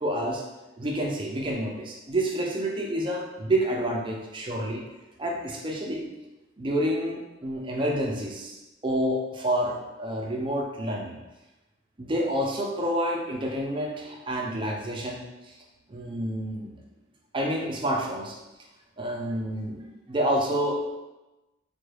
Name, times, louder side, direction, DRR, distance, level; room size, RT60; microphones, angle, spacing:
voice 1, 0.0-0.4 0.8-4.8 5.2-6.1 6.6-11.2 12.0-15.6 15.9-16.8 17.3-18.4 19.0-20.8, right 1 dB, 25° right, -1 dB, 0.4 m, -29 dB
4.3 x 2.2 x 3.3 m, 1.0 s
head